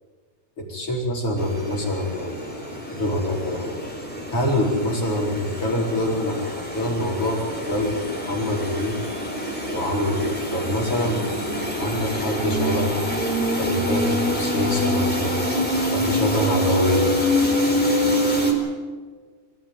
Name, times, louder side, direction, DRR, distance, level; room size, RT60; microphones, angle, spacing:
voice 1, 0.6-2.4 2.9-3.8 4.3-6.5 6.7-9.0 9.6-11.2 11.8-13.0 13.6-15.4 15.9-17.2, left 1 dB, 35° left, -1 dB, 5.1 m, -25 dB
sound 1, 1.4-18.5, left 1 dB, ahead, 3.9 m, -26 dB
26.0 x 15.5 x 9.6 m, 1.5 s
omnidirectional pair, 4.7 m